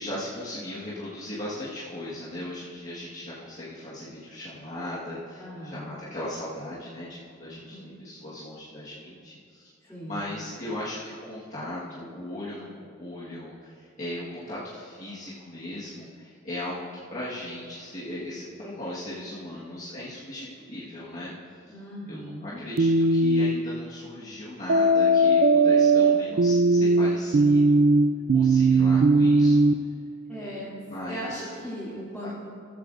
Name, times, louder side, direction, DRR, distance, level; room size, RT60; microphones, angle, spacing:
voice 1, 0.0-21.3 22.1-27.8 28.3-29.6 30.3-31.5 32.2-32.3, left 1 dB, 40° left, -9 dB, 1.6 m, -38 dB
voice 2, 5.4-5.9 7.5-7.8 9.9-10.3 21.7-22.6 30.3-30.7 31.1-32.3, equal, 5° left, -12 dB, 3.0 m, -38 dB
sound 1, 22.8-23.6 24.7-29.7, right 2 dB, 50° right, 0.4 m, -19 dB
15.0 x 13.5 x 2.6 m, 2.3 s
head